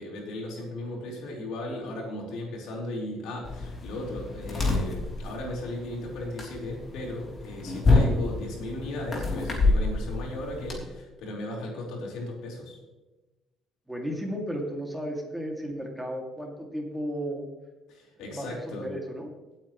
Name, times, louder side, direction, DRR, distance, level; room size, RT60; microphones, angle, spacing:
voice 1, 0.0-12.8 17.9-18.9, left 1 dB, 85° left, -1 dB, 4.5 m, -36 dB
sound 1, 3.4-10.8, left 3 dB, 25° left, 3.4 m, -27 dB
voice 2, 13.9-17.5 18.3-19.3, equal, 5° right, 0 dB, 2.4 m, -34 dB
19.0 x 8.8 x 3.2 m, 1.1 s
cardioid pair, 145°, 0 cm